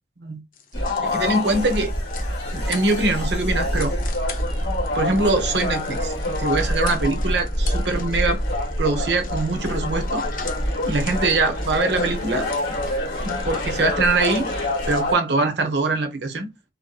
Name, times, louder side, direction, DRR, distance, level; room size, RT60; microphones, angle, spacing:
sound 1, 0.5-15.0, left 6 dB, 50° left, 0.6 m, -42 dB
sound 2, 0.7-15.1, left 1 dB, 75° left, 1.8 m, -26 dB
voice 1, 1.0-1.9 2.5-3.9 4.9-8.4 8.8-10.2 10.8-12.5 13.2-14.5 14.9-16.5, right 3 dB, 75° right, 0.8 m, -23 dB
3.5 x 2.6 x 2.3 m
head